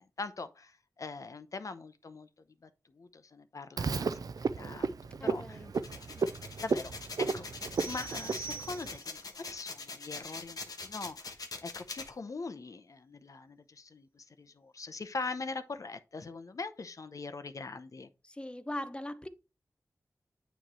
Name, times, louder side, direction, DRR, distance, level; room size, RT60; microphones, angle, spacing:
voice 1, 0.0-2.3 2.6-5.6 5.9-6.3 6.6-6.9 7.2-7.4 7.8-18.1, left 3 dB, 60° left, 0.6 m, -42 dB
Frog, 3.8-9.0, right 5 dB, 80° right, 0.4 m, -34 dB
voice 2, 5.2-5.7 6.2-6.3 18.4-19.3, left 1 dB, 15° left, 0.7 m, -40 dB
sound 1, 5.7-12.1, left 3 dB, 75° left, 1.1 m, -43 dB
sound 2, 7.8-9.3, right 5 dB, 40° left, 1.3 m, -44 dB
9.0 x 3.1 x 4.3 m
wide cardioid pair, 70°, 6 cm